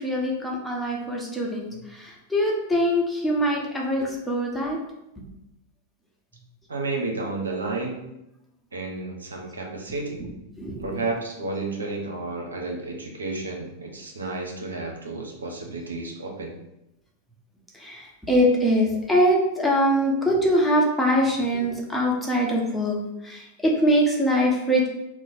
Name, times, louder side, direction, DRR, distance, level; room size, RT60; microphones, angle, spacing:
voice 1, 0.0-4.8 10.2-10.3 10.6-11.0 17.7-23.0 23.2-24.9, equal, 5° left, -3 dB, 0.9 m, -23 dB
voice 2, 6.7-8.1 8.7-10.2 10.8-16.5, right 3 dB, 85° right, 1 dB, 0.7 m, -31 dB
3.0 x 2.1 x 4.2 m, 0.87 s
hypercardioid pair, 95°, 0 cm